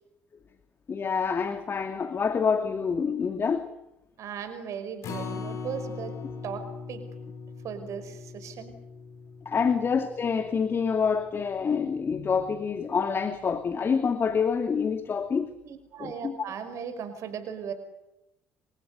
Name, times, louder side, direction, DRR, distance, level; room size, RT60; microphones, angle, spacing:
voice 1, 0.9-3.7 9.5-15.5 16.0-16.4, left 6 dB, 35° left, 9 dB, 2.5 m, -27 dB
voice 2, 4.2-6.2 6.4-7.1 7.6-8.8 15.6-17.7, right 7 dB, 55° right, 9 dB, 5.4 m, -37 dB
Acoustic guitar, 5.0-11.3 11.7-11.8 12.2-12.3, left 5 dB, 55° left, 5.8 m, -40 dB
29.5 x 24.0 x 8.2 m, 0.88 s
figure-of-eight pair, 55°, 6 cm